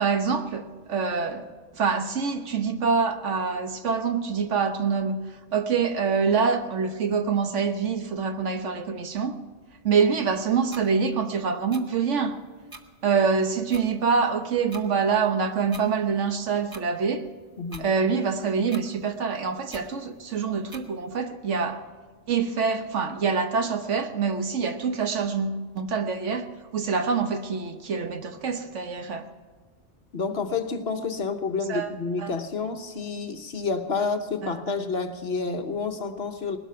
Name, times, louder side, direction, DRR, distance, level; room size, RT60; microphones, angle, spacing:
voice 1, 0.0-1.5 1.7-5.2 5.5-9.3 9.8-12.4 13.0-17.3 17.8-21.8 22.3-26.5 26.7-29.3 31.7-31.9 32.2-32.3 34.4-34.7, right 5 dB, 70° right, 7 dB, 1.4 m, -25 dB
sound 1, 10.7-10.8 11.7-11.8 12.7-12.8 13.7-13.8 14.7-14.8 15.7-15.8 16.7-16.8 17.7-17.9 18.7-18.8 19.7-19.9 20.7-20.8, right 2 dB, 20° right, 1.0 m, -42 dB
voice 2, 30.1-36.6, left 4 dB, 55° left, 7 dB, 1.2 m, -29 dB
20.0 x 12.5 x 5.7 m, 1.4 s
omnidirectional pair, 1.3 m